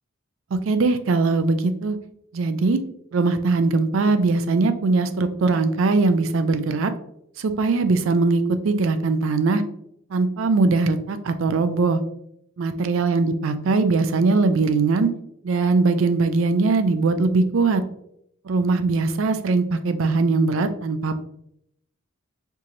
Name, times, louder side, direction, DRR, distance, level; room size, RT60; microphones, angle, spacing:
voice 1, 0.7-2.0 2.3-2.8 3.1-6.9 7.4-9.6 10.1-12.0 12.6-15.1 15.4-17.8 18.4-21.2, right 3 dB, 70° right, 10 dB, 0.4 m, -21 dB
4.6 x 2.9 x 2.5 m, 0.73 s
head